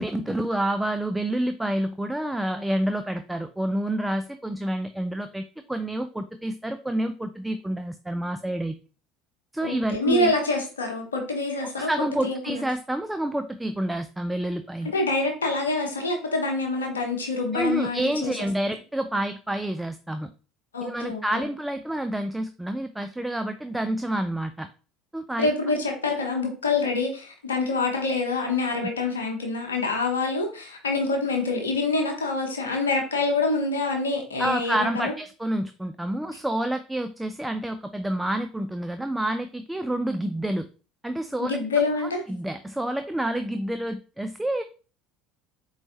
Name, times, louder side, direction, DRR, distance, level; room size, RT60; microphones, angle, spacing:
voice 1, 0.0-8.7 9.5-10.3 11.8-14.9 17.5-20.3 20.8-24.7 25.1-25.5 34.4-40.7 41.0-41.6 42.0-44.6, right 1 dB, 5° right, 8 dB, 0.3 m, -28 dB
voice 2, 9.6-12.7 14.8-18.4 20.7-21.4 25.4-35.1 41.4-42.2, left 3 dB, 90° left, 4 dB, 0.8 m, -26 dB
4.3 x 3.2 x 2.7 m, 0.36 s
hypercardioid pair, 70°, 0 cm